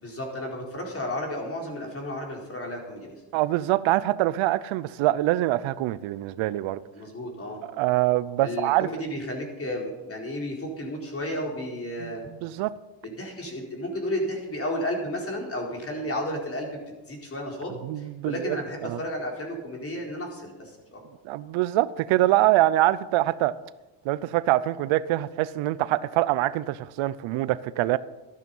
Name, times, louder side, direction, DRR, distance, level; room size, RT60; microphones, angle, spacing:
voice 1, 0.0-3.1 6.9-7.6 8.4-12.2 13.0-16.8 17.1-21.0, left 1 dB, 30° left, 0 dB, 4.3 m, -33 dB
voice 2, 3.3-6.8 7.6-8.9 12.0-12.1 12.4-12.7 17.8-18.6 18.8-19.0 21.2-23.5 24.0-28.0, right 16 dB, 75° right, 17 dB, 0.7 m, -24 dB
13.5 x 12.5 x 5.5 m, 1.1 s
cardioid pair, 110°, 47 cm